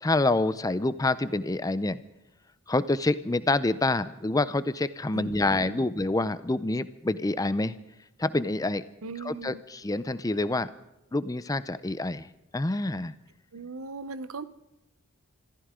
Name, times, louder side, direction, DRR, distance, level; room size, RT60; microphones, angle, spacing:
voice 1, 0.0-2.0 2.7-7.7 8.2-8.8 9.2-10.7 11.1-12.3 12.5-13.1, left 2 dB, 15° left, 14 dB, 0.5 m, -27 dB
voice 2, 5.1-5.9 9.0-9.6 13.5-14.4, right 4 dB, 85° right, 15 dB, 0.8 m, -39 dB
26.5 x 14.5 x 3.7 m, 0.91 s
head